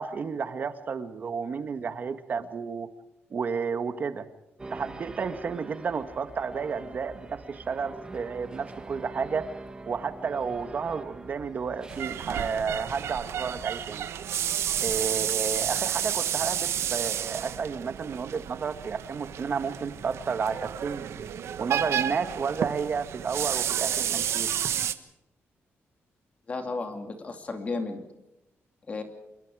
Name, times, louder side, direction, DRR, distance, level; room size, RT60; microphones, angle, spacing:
voice 1, 0.0-2.9 3.3-4.3 4.7-9.5 9.9-14.1 14.8-21.3 21.6-24.5, right 5 dB, 40° right, 10 dB, 1.5 m, -31 dB
sound 1, 4.6-13.8, right 2 dB, 20° right, 1.7 m, -44 dB
sound 2, 11.9-24.9, right 9 dB, 75° right, 1.3 m, -31 dB
voice 2, 26.5-28.0 28.9-29.0, left 3 dB, 30° left, 6 dB, 2.7 m, -33 dB
27.0 x 23.0 x 4.9 m, 0.90 s
wide cardioid pair, 175°, 5 cm